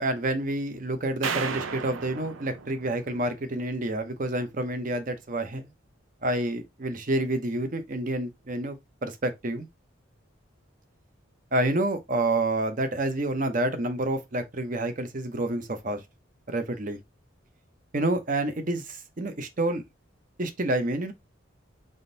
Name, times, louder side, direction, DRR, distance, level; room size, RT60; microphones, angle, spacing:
voice 1, 0.0-5.7 6.2-8.8 9.0-9.7 11.5-16.0 16.5-17.0 17.9-19.8 20.4-21.1, right 1 dB, 40° right, 0.7 m, -28 dB
sound 1, 1.2-3.6, right 5 dB, 85° right, 0.6 m, -34 dB
3.6 x 2.6 x 3.9 m
head